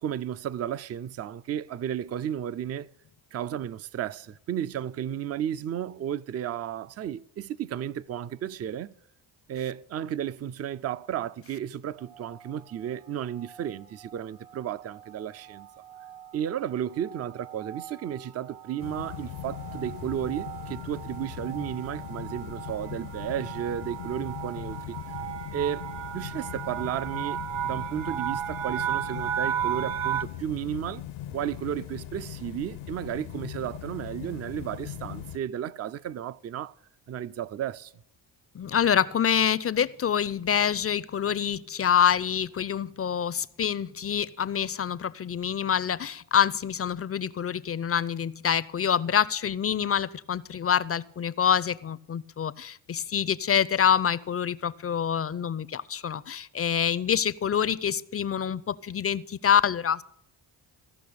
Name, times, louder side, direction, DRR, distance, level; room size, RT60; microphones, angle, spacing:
voice 1, 0.0-2.9 3.3-8.9 9.5-15.7 16.3-25.0 25.5-31.0 31.3-36.7 37.1-37.9, right 10 dB, 35° right, 0.4 m, -33 dB
sound 1, 12.1-12.6 13.3-13.7 14.0-14.2 14.5-30.2, right 10 dB, 90° right, 0.8 m, -36 dB
sound 2, 18.8-35.4, left 11 dB, 75° left, 0.7 m, -40 dB
voice 2, 38.5-60.0, left 8 dB, 30° left, 0.5 m, -26 dB
15.0 x 6.0 x 8.5 m
supercardioid pair, 70°, 48 cm